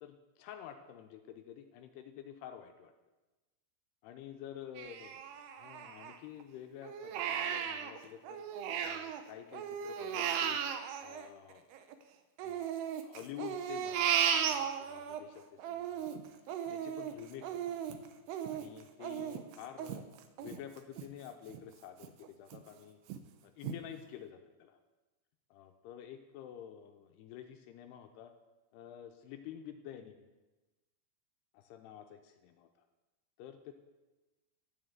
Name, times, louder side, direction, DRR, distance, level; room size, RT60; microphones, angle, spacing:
voice 1, 0.0-2.9 4.0-5.2 5.6-8.4 8.8-10.6 11.0-11.7 12.4-12.7 13.0-16.2 16.7-17.8 18.5-20.0 20.4-23.0 23.4-24.8 25.5-28.3 28.7-30.2 31.5-32.7 33.4-33.7, left 10 dB, 80° left, 6 dB, 2.4 m, -49 dB
Crying sobbing, 4.8-6.4 6.8-9.2 9.5-12.0 12.4-15.2 15.6-21.1 21.5-21.6 22.0-22.6 23.1-23.2 23.6-23.8, right 8 dB, 75° right, 2.6 m, -36 dB
12.0 x 7.4 x 8.1 m, 1.1 s
omnidirectional pair, 5.3 m